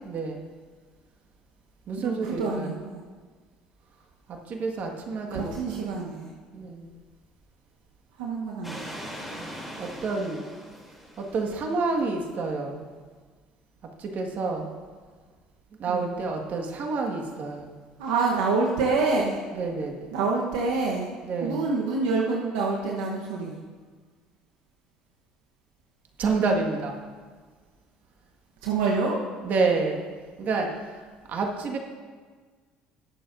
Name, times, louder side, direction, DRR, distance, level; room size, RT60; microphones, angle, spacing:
voice 1, 0.1-0.5 1.9-2.7 4.3-5.8 6.5-6.9 9.4-10.4 11.2-12.9 14.0-14.7 15.8-17.7 19.6-20.2 21.2-21.6 26.2-27.0 29.4-30.1 30.4-31.8, right 4 dB, 55° right, 2 dB, 1.7 m, -29 dB
voice 2, 2.0-3.0 5.3-6.3 8.2-8.9 15.9-16.1 18.0-19.4 20.1-21.1 21.4-23.6 28.6-29.2, right 4 dB, 85° right, -1 dB, 1.0 m, -27 dB
sound 1, 8.6-12.0, equal, 5° right, 3.0 m, -41 dB
20.0 x 7.2 x 2.6 m, 1.5 s
hypercardioid pair, 75°, 3 cm